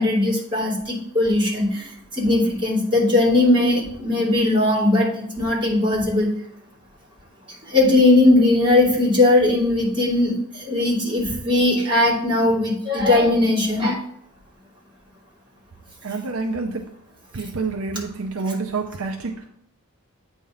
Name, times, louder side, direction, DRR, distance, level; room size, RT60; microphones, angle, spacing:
voice 1, 0.0-1.9 2.1-5.1 5.4-6.3 7.7-14.0, left 2 dB, 25° right, -4 dB, 2.8 m, -19 dB
voice 2, 16.0-16.8 17.3-19.5, right 3 dB, 65° right, 3 dB, 0.6 m, -28 dB
8.7 x 3.5 x 5.6 m, 0.69 s
head